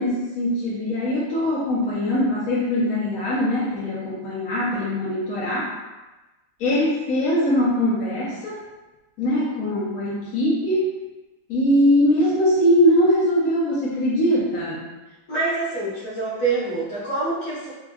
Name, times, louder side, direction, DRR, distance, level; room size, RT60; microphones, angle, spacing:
voice 1, 0.0-5.7 6.6-8.6 9.2-10.9 11.5-14.9, equal, 70° left, -8 dB, 0.8 m, -21 dB
voice 2, 15.3-17.7, right 3 dB, 50° left, -9 dB, 1.3 m, -26 dB
3.5 x 2.1 x 2.3 m, 1.1 s
omnidirectional pair, 2.3 m